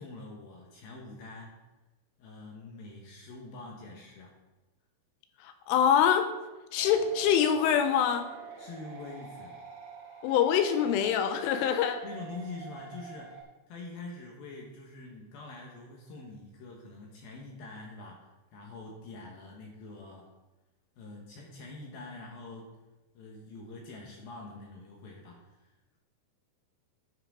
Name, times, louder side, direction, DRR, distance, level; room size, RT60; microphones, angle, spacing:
voice 1, 0.0-1.5 2.2-4.3 8.6-9.5 12.0-13.4 13.7-20.3 21.0-22.7 23.1-26.0, left 3 dB, 70° left, 0 dB, 2.3 m, -45 dB
voice 2, 5.4-6.3 6.7-8.3 10.2-12.0, left 8 dB, 90° left, 7 dB, 3.2 m, -25 dB
sound 1, 6.8-13.4, right 6 dB, 55° right, 1.4 m, -46 dB
11.5 x 5.8 x 4.8 m, 1.1 s
omnidirectional pair, 5.7 m